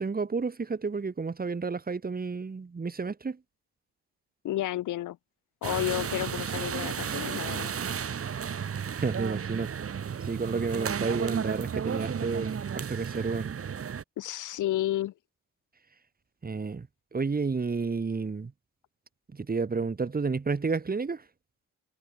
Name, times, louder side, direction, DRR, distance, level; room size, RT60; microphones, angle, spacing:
voice 1, 0.0-3.4 9.0-9.7 10.2-13.5 16.4-16.9 17.1-18.5 19.3-21.2, right 4 dB, 30° right, 4.5 m, -31 dB
voice 2, 4.4-5.2 5.6-7.7 14.2-15.1, left 14 dB, 80° left, 4.1 m, -31 dB
sound 1, 5.6-14.0, right 7 dB, 50° right, 4.4 m, -33 dB
cardioid pair, 90°, 30 cm